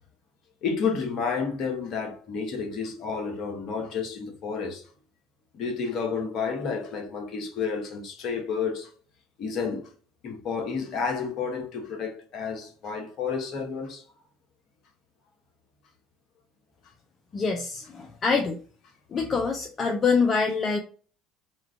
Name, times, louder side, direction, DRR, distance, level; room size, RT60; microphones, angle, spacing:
voice 1, 0.6-4.8 5.5-8.9 9.4-9.9 10.2-14.0, left 5 dB, 55° left, 1.1 m, -30 dB
voice 2, 17.3-18.6 19.1-20.8, left 5 dB, 35° left, 0.6 m, -25 dB
3.1 x 2.4 x 3.3 m
hypercardioid pair, 65°, 0 cm